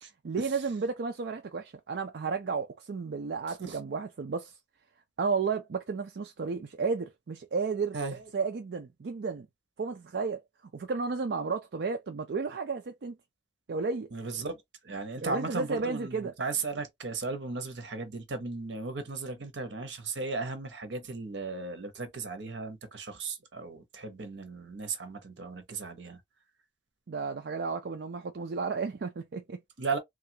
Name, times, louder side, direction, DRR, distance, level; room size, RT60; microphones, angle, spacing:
voice 1, 0.2-4.5 5.2-8.0 8.3-9.5 9.8-10.4 10.7-13.2 13.7-14.1 15.2-16.3 27.1-29.6, right 4 dB, 65° right, 0.4 m, -32 dB
voice 2, 14.1-14.6 14.8-26.2 29.8-30.0, right 4 dB, 80° right, 0.9 m, -36 dB
3.2 x 2.4 x 2.8 m
head